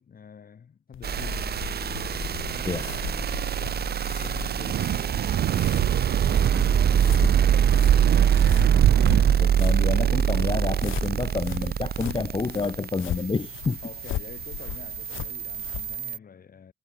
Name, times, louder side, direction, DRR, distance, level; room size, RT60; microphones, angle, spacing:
voice 1, 0.0-1.6 2.4-6.1 6.4-8.1 13.8-16.7, left 7 dB, 45° left, 6.2 m, -47 dB
sound 1, 0.9-16.0, left 15 dB, 85° left, 1.5 m, -39 dB
sound 2, 1.0-16.2, right 8 dB, 55° right, 1.8 m, -25 dB
Wind, 4.5-9.6, right 12 dB, 70° right, 1.8 m, -25 dB
voice 2, 9.4-13.8, left 4 dB, 25° left, 2.1 m, -29 dB
cardioid pair, 90°, 20 cm